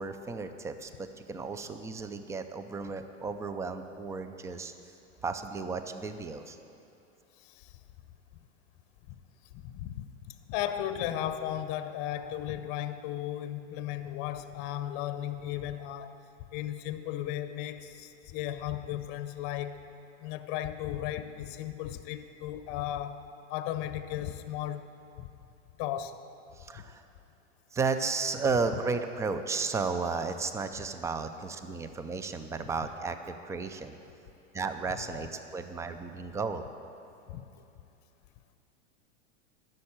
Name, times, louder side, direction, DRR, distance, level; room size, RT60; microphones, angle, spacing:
voice 1, 0.0-4.7 5.2-6.6 26.6-27.0 27.7-33.9 34.5-36.6, right 4 dB, 10° right, 9 dB, 0.4 m, -33 dB
voice 2, 7.4-7.8 9.1-9.2 9.5-16.2 16.5-19.8 20.2-23.2 23.5-24.9 25.2-25.3 25.8-26.2 26.7-26.8 37.3-37.7, left 11 dB, 45° left, 11 dB, 0.8 m, -35 dB
11.5 x 6.6 x 8.7 m, 2.7 s
hypercardioid pair, 115°, 36 cm